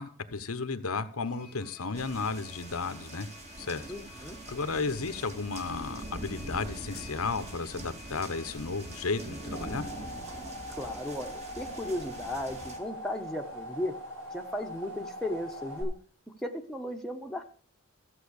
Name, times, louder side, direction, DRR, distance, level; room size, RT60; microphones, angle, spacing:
voice 1, 0.0-3.3 3.6-3.8 4.5-9.9, left 4 dB, 90° left, 1.1 m, -33 dB
sound 1, 1.2-9.7, left 1 dB, 50° right, 7.8 m, -53 dB
sound 2, 1.9-12.8, right 1 dB, 30° right, 2.3 m, -43 dB
voice 2, 3.9-4.4 10.8-13.9 14.3-15.9 16.4-17.4, left 1 dB, ahead, 1.2 m, -35 dB
sound 3, 9.3-15.8, equal, 75° right, 7.6 m, -42 dB
14.0 x 7.8 x 6.5 m
head